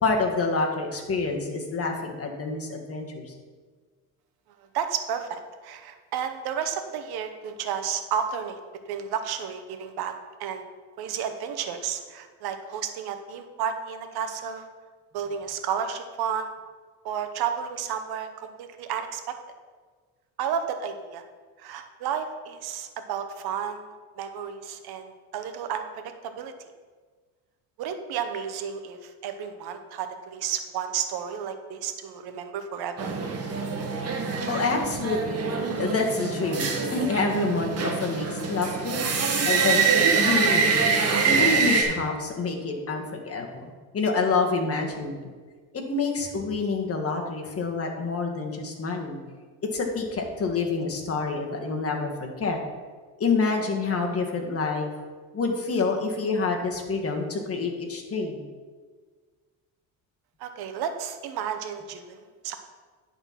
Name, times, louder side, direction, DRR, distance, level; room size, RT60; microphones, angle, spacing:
voice 1, 0.0-3.3 34.5-35.5 35.8-39.0 39.4-40.8 41.2-45.3 45.7-49.2 49.7-52.6 53.2-54.9 55.3-58.4, left 4 dB, 35° left, 2 dB, 1.7 m, -27 dB
voice 2, 4.7-8.6 8.9-10.1 10.4-10.6 11.0-14.7 15.1-16.5 17.0-19.4 20.4-21.2 21.6-23.9 24.2-26.5 27.8-33.1 60.4-62.6, right 8 dB, 70° right, 7 dB, 1.1 m, -32 dB
sound 1, 33.0-41.8, right 5 dB, 40° right, 1.6 m, -25 dB
10.5 x 4.3 x 5.9 m, 1.5 s
supercardioid pair, 95°, 39 cm